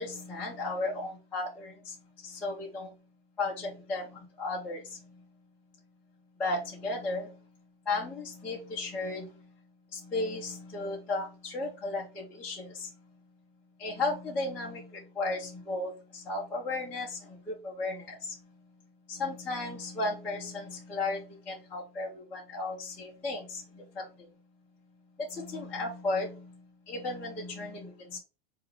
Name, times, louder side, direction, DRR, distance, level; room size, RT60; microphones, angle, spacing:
voice 1, 0.0-2.0 2.2-2.9 3.4-5.2 6.4-7.4 7.9-9.5 9.9-12.9 13.8-18.4 19.1-24.3 25.2-28.2, left 2 dB, 5° left, 0.3 m, -35 dB
4.6 x 2.3 x 3.1 m
supercardioid pair, 165°, 29 cm